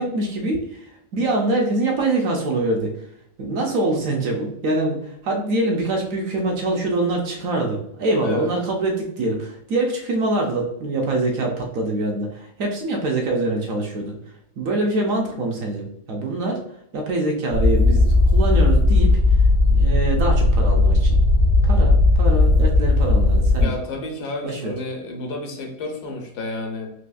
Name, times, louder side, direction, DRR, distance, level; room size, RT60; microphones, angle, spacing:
voice 1, 0.0-3.1 3.4-14.1 14.6-16.6 16.9-19.2 19.7-21.2 21.6-23.7 24.4-24.7, right 2 dB, 65° right, 1 dB, 0.9 m, -24 dB
sound 1, 17.5-23.7, left 2 dB, 80° right, 1.4 m, -16 dB
voice 2, 23.6-26.9, left 2 dB, 80° left, 2 dB, 1.3 m, -30 dB
4.1 x 2.7 x 2.3 m, 0.76 s
omnidirectional pair, 1.7 m